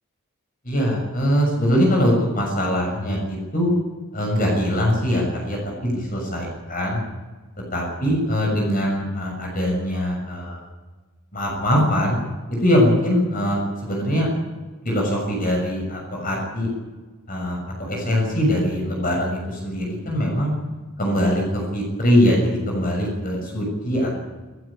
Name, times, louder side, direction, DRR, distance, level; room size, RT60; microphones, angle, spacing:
voice 1, 0.6-3.7 4.1-7.0 7.7-10.6 11.3-12.2 12.5-14.3 14.8-16.7 17.3-20.5 21.0-24.1, equal, 40° left, 0 dB, 6.7 m, -22 dB
28.5 x 16.0 x 8.7 m, 1.4 s
head